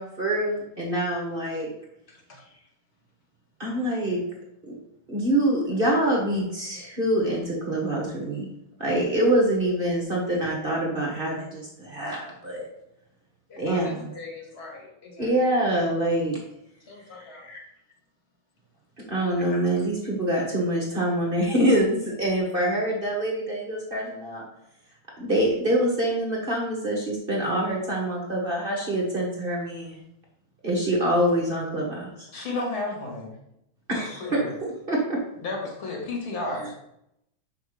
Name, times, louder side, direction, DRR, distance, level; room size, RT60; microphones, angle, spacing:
voice 1, 0.0-1.7 3.6-4.2 4.6-4.7 5.1-8.5 8.8-12.7 13.6-14.1 15.2-16.4 19.1-24.4 25.2-30.0 30.6-32.3 33.9-34.4 34.9-35.2, right 1 dB, 30° right, -2 dB, 1.4 m, -25 dB
voice 2, 2.1-2.7 13.5-15.3 16.8-17.7 19.5-19.7 31.0-31.1 33.9-34.3, left 3 dB, 35° left, -1 dB, 1.7 m, -43 dB
voice 3, 32.3-33.3 34.0-34.5 35.4-36.7, left 2 dB, 85° left, 0 dB, 2.7 m, -32 dB
5.8 x 5.3 x 5.0 m, 0.80 s
omnidirectional pair, 2.2 m